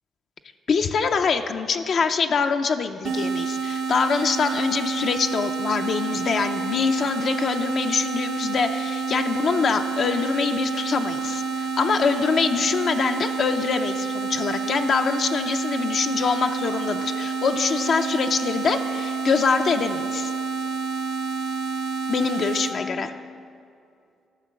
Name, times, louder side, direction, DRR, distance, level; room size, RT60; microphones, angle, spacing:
voice 1, 0.7-20.3 22.1-23.1, left 5 dB, 55° left, 6 dB, 0.5 m, -24 dB
sound 1, 3.0-22.8, right 5 dB, 75° right, 1.7 m, -28 dB
13.0 x 5.8 x 6.3 m, 2.4 s
cardioid pair, 90°, 0 cm